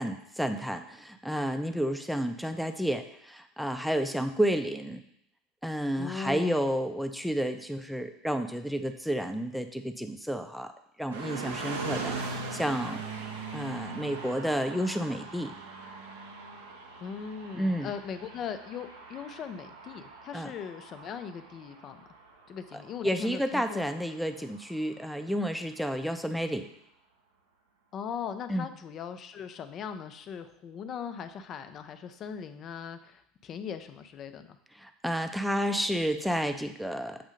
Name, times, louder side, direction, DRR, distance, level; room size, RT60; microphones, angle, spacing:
voice 1, 0.0-5.0 5.6-10.7 11.0-13.0 13.5-15.5 17.5-17.9 20.3-20.5 23.0-26.7 28.5-28.7 34.8-37.2, equal, ahead, 6 dB, 0.6 m, -31 dB
voice 2, 6.0-6.7 17.0-22.0 22.5-23.8 27.9-34.6, left 7 dB, 45° left, 10 dB, 0.6 m, -39 dB
sound 1, 11.1-25.1, right 4 dB, 80° right, 0.8 m, -41 dB
7.7 x 2.7 x 5.1 m, 0.75 s
hypercardioid pair, 75°, 0 cm